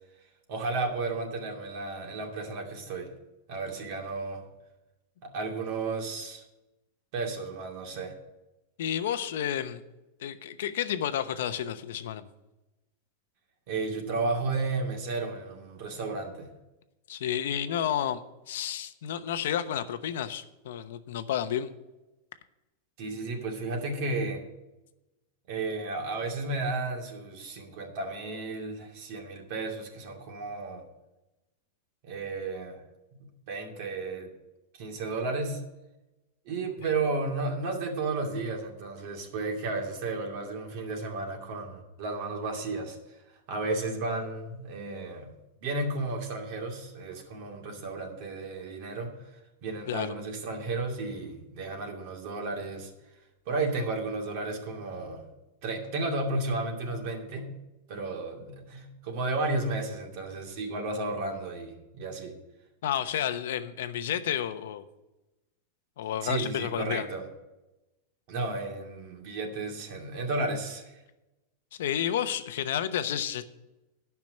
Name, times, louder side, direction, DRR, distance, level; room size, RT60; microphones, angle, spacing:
voice 1, 0.5-3.1 3.5-4.4 5.2-6.4 7.1-8.1 13.7-16.5 23.0-24.4 25.5-30.8 32.0-32.8 33.2-34.3 34.8-35.6 36.5-43.0 43.5-45.3 45.6-49.1 49.6-52.9 53.5-55.2 55.6-57.5 57.9-62.4 66.2-67.3 68.3-71.0, right 3 dB, 50° right, 1 dB, 2.4 m, -33 dB
voice 2, 8.8-9.8 10.2-12.3 17.1-18.2 18.5-21.7 49.9-50.2 62.8-64.8 66.0-67.1 71.8-73.4, left 10 dB, 75° left, 10 dB, 0.9 m, -31 dB
11.0 x 6.0 x 7.8 m, 0.99 s
supercardioid pair, 155°, 0 cm